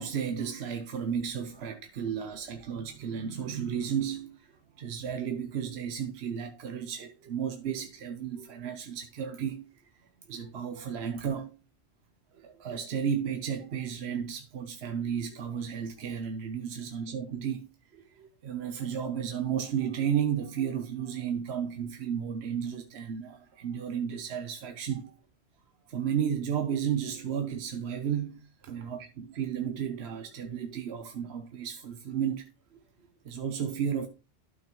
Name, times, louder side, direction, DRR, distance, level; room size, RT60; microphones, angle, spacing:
voice 1, 0.0-4.4 4.8-9.7 10.3-11.5 12.4-17.7 17.9-25.1 25.9-32.4 33.2-34.1, right 8 dB, 70° right, 1.0 m, -33 dB
12.5 x 6.0 x 3.0 m
omnidirectional pair, 1.1 m